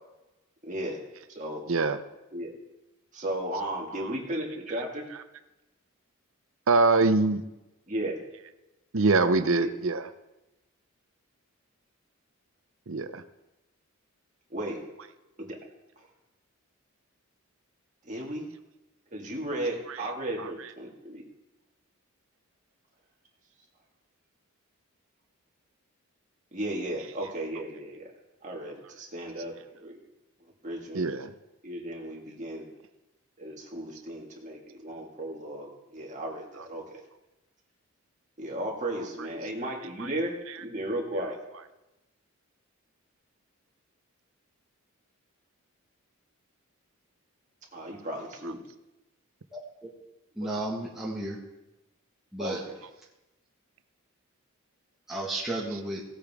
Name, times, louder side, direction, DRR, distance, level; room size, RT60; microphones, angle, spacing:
voice 1, 0.7-1.0 1.3-1.6 2.3-2.5 3.1-5.0 7.9-8.2 9.4-9.7 14.5-14.8 15.4-15.6 18.1-18.4 19.1-21.2 26.5-28.1 28.4-29.5 29.8-30.0 30.6-31.0 31.6-32.6 33.4-37.0 38.4-40.3 40.6-41.4 47.7-48.6 52.4-52.7, right 1 dB, 35° right, -1 dB, 1.9 m, -35 dB
voice 2, 1.7-2.0 3.9-4.1 6.7-7.4 8.9-10.1 12.9-13.2 20.4-20.5 30.9-31.3 40.0-40.1, right 3 dB, 65° right, 11 dB, 0.7 m, -24 dB
voice 3, 50.3-51.4 52.3-52.6 55.1-56.0, right 2 dB, ahead, -7 dB, 1.5 m, -33 dB
17.0 x 8.4 x 3.6 m, 0.99 s
head